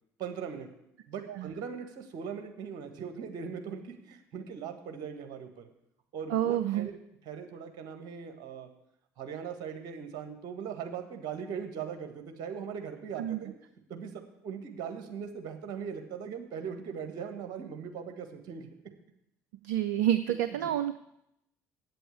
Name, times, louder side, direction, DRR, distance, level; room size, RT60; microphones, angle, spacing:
voice 1, 0.2-0.7 1.1-5.7 6.1-6.9 7.2-8.7 9.2-13.5 13.9-18.7 20.6-20.7, right 7 dB, 60° right, 6 dB, 1.6 m, -40 dB
voice 2, 6.3-6.9 13.2-13.4 19.6-21.0, right 11 dB, 75° right, 12 dB, 0.4 m, -28 dB
8.5 x 7.8 x 8.5 m, 0.80 s
figure-of-eight pair, 55°, 9 cm